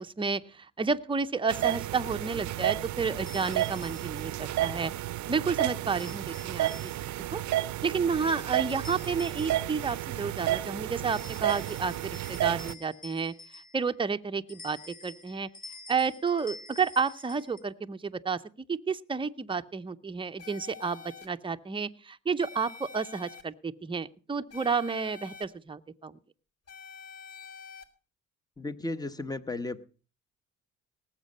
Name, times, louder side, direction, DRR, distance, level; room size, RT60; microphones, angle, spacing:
voice 1, 0.0-4.9 5.3-6.9 7.3-7.4 7.8-13.3 13.7-15.5 15.9-18.4 18.7-26.2, right 5 dB, 15° right, 9 dB, 0.7 m, -31 dB
sound 1, 1.5-1.7 3.3-4.3 5.9-7.2 8.3-10.1 11.1-14.0 14.5-17.6, left 3 dB, 30° left, 4.0 m, -49 dB
sound 2, 1.5-12.7, right 14 dB, 70° right, 0.6 m, -32 dB
sound 3, 20.4-21.3 22.4-23.4 24.5-25.4 26.7-27.8, left 5 dB, 50° left, 2.3 m, -47 dB
voice 2, 28.6-29.8, left 2 dB, 15° left, 13 dB, 1.0 m, -34 dB
18.5 x 7.5 x 5.3 m, 0.37 s
cardioid pair, 90°, 30 cm